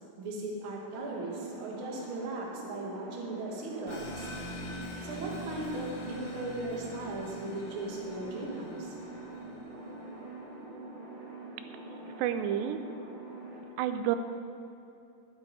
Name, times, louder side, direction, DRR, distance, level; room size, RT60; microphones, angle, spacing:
voice 1, 0.2-4.3 5.0-8.9, right 2 dB, 40° right, -2 dB, 2.1 m, -38 dB
sound 1, 0.9-13.6, right 2 dB, 70° right, 4.5 m, -44 dB
sound 2, 3.9-10.1, left 1 dB, 50° left, 1.5 m, -44 dB
voice 2, 12.2-12.8 13.8-14.2, right 11 dB, 90° right, 9 dB, 2.9 m, -29 dB
9.5 x 8.9 x 9.9 m, 2.7 s
omnidirectional pair, 4.9 m